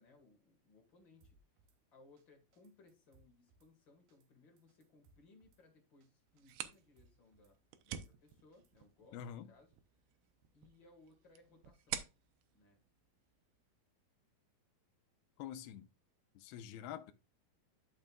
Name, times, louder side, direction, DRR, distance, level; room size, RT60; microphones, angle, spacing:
voice 1, 0.0-7.6 7.8-9.7 10.5-12.1 12.5-12.8, left 3 dB, 40° left, 2.2 m, -65 dB
Drum kit / Snare drum, 1.2-1.8 2.2-2.3 2.5-3.7 4.1-4.3 4.6-5.6 6.0-6.1 6.4-7.5 7.9-8.9, right 3 dB, 70° right, 2.6 m, -71 dB
sound 1, 6.3-13.8, right 11 dB, 85° right, 2.7 m, -50 dB
voice 2, 9.1-9.5 15.4-15.9 16.4-17.1, left 10 dB, 90° left, 2.7 m, -46 dB
12.5 x 5.2 x 2.4 m
omnidirectional pair, 4.5 m